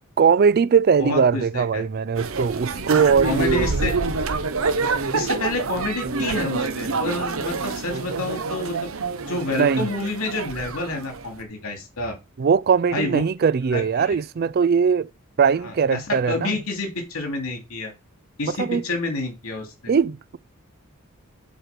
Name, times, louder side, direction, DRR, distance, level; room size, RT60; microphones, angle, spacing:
voice 1, 0.2-3.7 9.5-9.9 12.4-15.1 15.4-16.6 18.4-18.8 19.9-20.4, right 6 dB, 45° right, 0.4 m, -20 dB
voice 2, 1.0-1.8 3.2-3.9 5.1-8.9 9.3-12.2 12.9-13.2 13.7-14.1 15.6-17.9 18.4-19.9, left 2 dB, 75° left, 2.6 m, -28 dB
sound 1, 2.1-11.4, right 4 dB, 70° right, 0.9 m, -27 dB
8.0 x 4.5 x 6.0 m
head